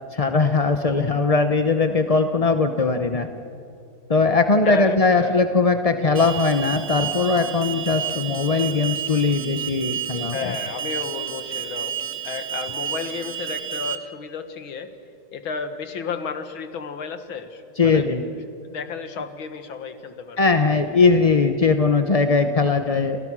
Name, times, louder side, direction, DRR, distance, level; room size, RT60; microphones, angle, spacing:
voice 1, 0.1-3.3 4.1-10.5 17.8-18.2 20.4-23.2, left 4 dB, 45° left, 7 dB, 0.4 m, -20 dB
voice 2, 0.8-1.2 4.6-5.4 10.3-14.9 15.3-18.3 18.6-20.8, left 5 dB, 80° left, 9 dB, 2.3 m, -33 dB
Alarm, 6.2-14.0, right 9 dB, 50° right, 1.8 m, -31 dB
30.0 x 27.5 x 6.2 m, 2.5 s
omnidirectional pair, 2.2 m